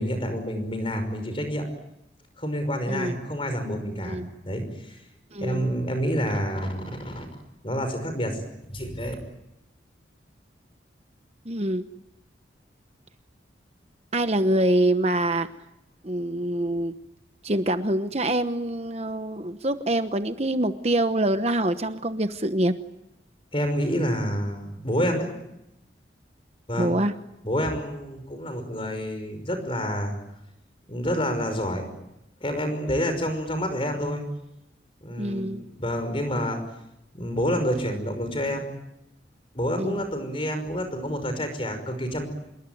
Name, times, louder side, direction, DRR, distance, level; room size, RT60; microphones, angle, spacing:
voice 1, 0.0-1.6 2.4-4.2 4.4-5.0 5.4-7.3 7.6-8.4 8.7-9.2 23.5-25.3 26.7-27.0 27.4-30.2 30.9-31.8 32.4-34.2 35.0-35.5 35.8-36.6 37.1-38.7 39.5-42.3, equal, 30° left, 8 dB, 5.6 m, -28 dB
voice 2, 5.3-5.8 11.5-11.9 14.1-15.5 16.0-16.9 17.4-22.8 26.8-27.1 35.2-35.6 39.8-40.0, right 1 dB, 35° right, 9 dB, 1.0 m, -25 dB
27.5 x 22.5 x 9.4 m, 0.87 s
head